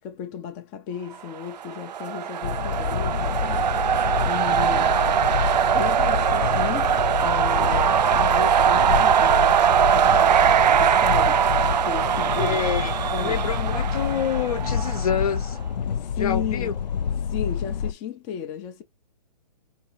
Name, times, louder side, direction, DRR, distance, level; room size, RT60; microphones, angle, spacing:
voice 1, 0.0-3.9 4.2-5.0 5.7-13.5 16.0-16.8 17.2-18.8, left 8 dB, 20° left, 0.5 m, -35 dB
sound 1, 1.5-15.3, right 9 dB, 85° right, 0.4 m, -21 dB
sound 2, 2.4-17.9, left 7 dB, 90° left, 0.5 m, -28 dB
voice 2, 12.4-12.9 13.2-15.6 16.2-16.8, left 8 dB, 60° left, 1.0 m, -27 dB
3.7 x 2.7 x 3.0 m
hypercardioid pair, 145°, 21 cm